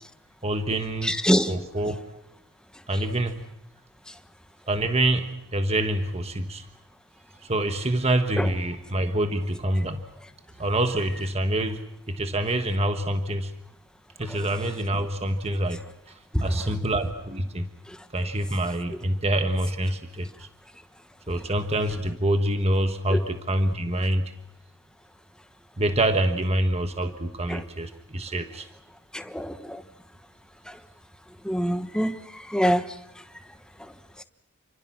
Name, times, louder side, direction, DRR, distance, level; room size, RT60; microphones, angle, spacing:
voice 1, 0.4-1.2 1.5-2.0 2.9-3.4 4.7-6.7 7.4-10.0 10.6-13.5 14.2-15.8 16.4-17.7 18.1-20.5 21.3-24.3 25.8-28.7, right 1 dB, 30° right, 7 dB, 1.4 m, -26 dB
voice 2, 1.0-1.5 8.4-8.5 16.3-16.4 23.1-23.2 27.5-27.6 29.1-29.8 31.4-32.1 32.5-32.8, equal, 5° left, 9 dB, 1.2 m, -24 dB
29.0 x 24.5 x 6.1 m, 0.89 s
head